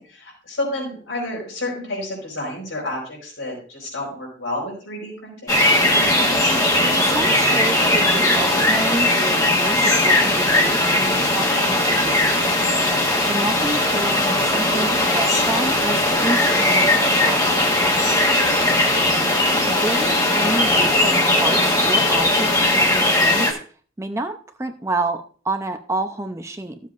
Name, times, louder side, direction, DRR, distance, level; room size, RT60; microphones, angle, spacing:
voice 1, 0.0-5.6 18.4-18.6, left 1 dB, 85° left, -4 dB, 4.7 m, -30 dB
sound 1, 5.5-23.5, left 1 dB, 20° left, 1.3 m, -18 dB
voice 2, 6.9-12.6 13.3-17.4 19.7-23.5 24.0-26.8, right 2 dB, 15° right, 7 dB, 0.5 m, -29 dB
14.5 x 7.3 x 2.5 m, 0.43 s
head